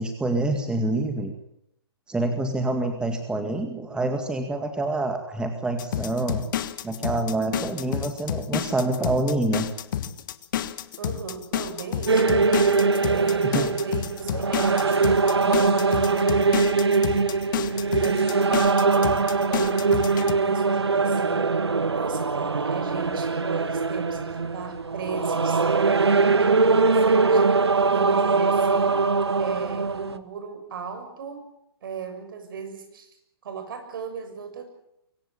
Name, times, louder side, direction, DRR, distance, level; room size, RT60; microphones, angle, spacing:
voice 1, 0.0-1.3 2.1-6.5 6.8-9.7 13.5-13.7, right 2 dB, 5° right, 5 dB, 2.1 m, -26 dB
sound 1, 5.8-20.3, left 10 dB, 50° left, 1.4 m, -30 dB
voice 2, 11.0-12.4 13.0-17.2 18.0-21.5 21.9-27.4 27.9-29.0 29.4-31.5 31.8-33.1 33.4-34.6, right 6 dB, 55° right, 7 dB, 6.8 m, -37 dB
sound 2, 12.1-30.2, right 4 dB, 85° right, 1.4 m, -22 dB
23.5 x 16.5 x 9.0 m, 0.79 s
figure-of-eight pair, 125°, 13 cm